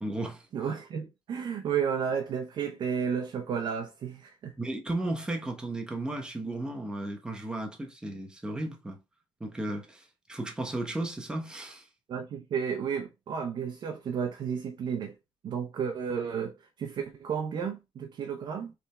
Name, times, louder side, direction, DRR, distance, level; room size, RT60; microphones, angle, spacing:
voice 1, 0.0-0.5 4.6-9.0 9.4-11.9, right 2 dB, 10° right, 1.0 m, -34 dB
voice 2, 0.5-4.5 12.1-15.1 15.4-18.7, right 7 dB, 50° right, 0.7 m, -32 dB
3.5 x 3.4 x 4.2 m
cardioid pair, 155°, 10 cm